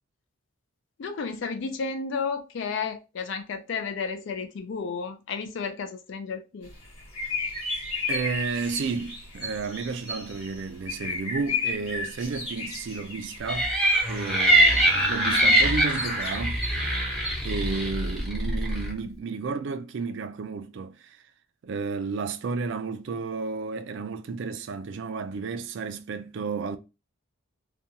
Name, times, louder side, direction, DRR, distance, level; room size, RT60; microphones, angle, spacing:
voice 1, 1.0-6.7, left 5 dB, 55° left, 0.3 m, -32 dB
sound 1, 6.6-18.2, left 3 dB, 80° left, 1.2 m, -34 dB
voice 2, 8.1-13.7 14.1-16.6 17.4-21.2 21.6-26.8, right 4 dB, 55° right, 0.3 m, -32 dB
sound 2, 13.5-18.9, right 1 dB, ahead, 0.6 m, -23 dB
2.5 x 2.3 x 2.7 m
head